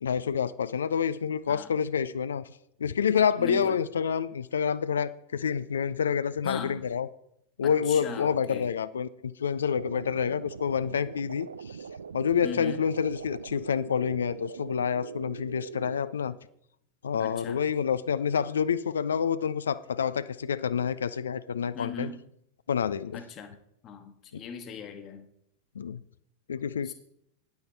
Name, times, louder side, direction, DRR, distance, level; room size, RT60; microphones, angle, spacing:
voice 1, 0.0-2.5 2.8-7.1 7.6-11.8 12.1-16.4 17.0-22.1 22.7-23.2 25.8-26.0 26.5-26.9, left 7 dB, 70° left, 0.4 m, -28 dB
voice 2, 3.4-3.8 6.4-6.9 7.6-8.7 12.4-12.8 17.2-17.6 21.7-22.2 23.1-23.6 23.8-25.2 26.8-26.9, left 5 dB, 30° left, 1.3 m, -39 dB
sound 1, 9.7-16.0, right 6 dB, 70° right, 0.4 m, -42 dB
9.5 x 9.2 x 4.5 m
figure-of-eight pair, 90°, 0 cm